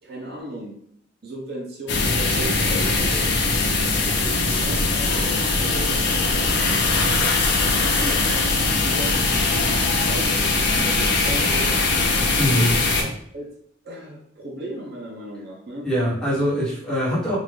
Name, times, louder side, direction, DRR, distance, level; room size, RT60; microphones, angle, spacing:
voice 1, 0.0-0.8 1.2-3.4 4.1-8.2 8.8-11.7 12.5-13.5 13.8-15.9, right 1 dB, 55° right, -1 dB, 0.8 m, -36 dB
sound 1, 1.9-13.0, left 3 dB, 60° left, 0.7 m, -21 dB
voice 2, 12.4-12.7 15.8-17.4, equal, 5° left, -8 dB, 1.4 m, -22 dB
3.5 x 2.5 x 3.3 m, 0.68 s
head